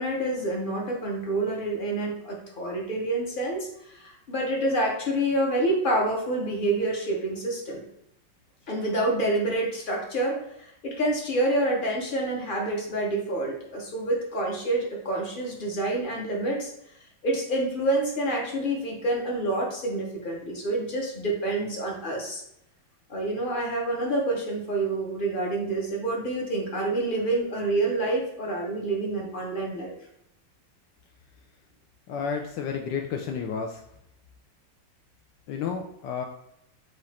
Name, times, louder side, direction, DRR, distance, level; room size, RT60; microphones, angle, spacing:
voice 1, 0.0-7.8 8.7-16.7 17.2-22.4 23.1-29.9, right 1 dB, 40° left, -1 dB, 0.7 m, -27 dB
voice 2, 32.1-33.8 35.5-36.2, left 6 dB, 75° left, 2 dB, 1.1 m, -31 dB
5.1 x 2.4 x 4.1 m, 0.78 s
omnidirectional pair, 2.0 m